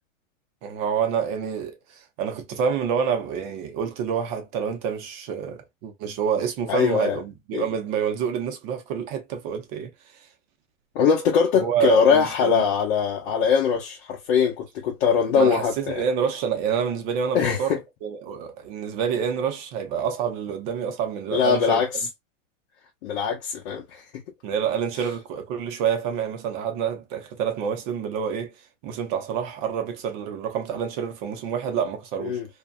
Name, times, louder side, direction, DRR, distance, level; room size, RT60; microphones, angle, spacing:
voice 1, 0.6-9.9 11.6-12.6 15.3-21.8 24.4-28.5 28.8-32.4, right 7 dB, 35° right, 0.7 m, -27 dB
voice 2, 6.7-7.2 7.5-7.7 10.9-16.0 17.3-17.8 21.3-21.9 23.0-24.0 32.2-32.5, left 6 dB, 50° left, 0.8 m, -22 dB
2.7 x 2.2 x 2.3 m
hypercardioid pair, 140°, 41 cm